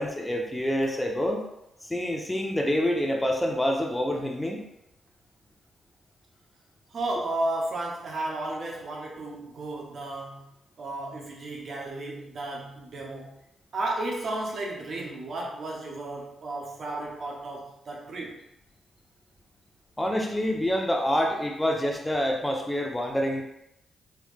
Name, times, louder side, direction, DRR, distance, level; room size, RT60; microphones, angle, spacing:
voice 1, 0.0-1.4 1.8-4.6 20.0-23.4, equal, 15° left, 1 dB, 0.7 m, -27 dB
voice 2, 6.9-10.5 10.8-13.3 13.7-18.4, right 2 dB, 60° right, -2 dB, 0.7 m, -33 dB
3.4 x 3.1 x 2.4 m, 0.82 s
hypercardioid pair, 45°, 0 cm